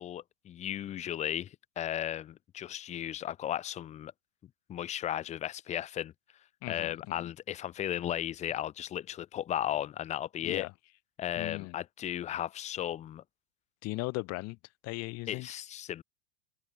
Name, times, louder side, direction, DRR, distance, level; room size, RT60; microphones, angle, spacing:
voice 1, 0.0-4.1 4.7-6.1 6.7-10.7 11.2-13.2 15.3-16.0, left 11 dB, 20° left, 0.5 m, -35 dB
voice 2, 6.6-7.3 10.4-10.7 11.4-11.8 13.8-14.6 14.8-15.5, left 22 dB, 40° left, 1.7 m, -37 dB
supercardioid pair, 130°, 37 cm